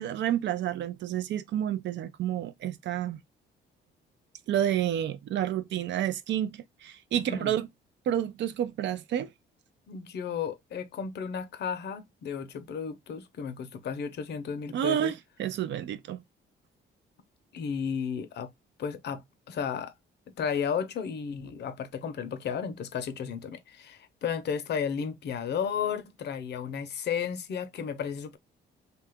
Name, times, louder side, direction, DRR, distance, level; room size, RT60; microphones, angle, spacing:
voice 1, 0.0-3.2 4.5-7.7 8.1-9.3 14.7-16.2, right 11 dB, 65° right, 0.4 m, -30 dB
voice 2, 7.3-7.6 9.9-15.1 17.5-18.5 18.8-19.9 20.4-28.4, left 7 dB, 60° left, 0.6 m, -33 dB
2.8 x 2.3 x 3.4 m
cardioid pair, 90°, 20 cm